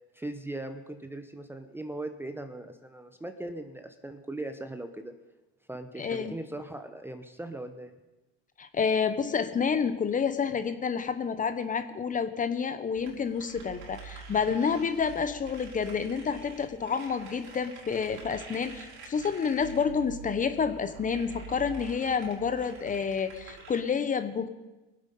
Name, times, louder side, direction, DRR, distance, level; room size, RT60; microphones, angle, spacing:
voice 1, 0.1-5.1 5.7-7.9, right 2 dB, 5° right, 8 dB, 0.8 m, -39 dB
voice 2, 6.0-6.3 8.6-24.5, left 6 dB, 25° left, 11 dB, 1.0 m, -29 dB
sound 1, 12.9-23.8, right 5 dB, 80° right, 4.5 m, -46 dB
22.5 x 8.1 x 5.4 m, 1.1 s
supercardioid pair, 115°, 33 cm